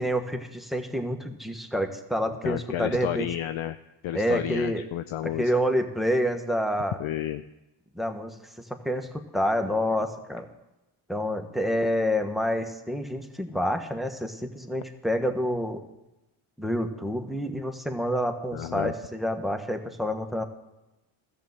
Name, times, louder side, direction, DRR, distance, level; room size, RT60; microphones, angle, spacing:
voice 1, 0.0-3.3 4.1-4.8 5.2-7.0 7.9-10.5 11.1-15.8 16.6-20.4, equal, ahead, 6 dB, 1.3 m, -28 dB
voice 2, 2.3-3.8 4.0-5.5 7.0-7.4 18.5-18.9, left 12 dB, 70° left, 11 dB, 0.6 m, -31 dB
13.5 x 7.2 x 7.9 m, 0.96 s
cardioid pair, 70°, 50 cm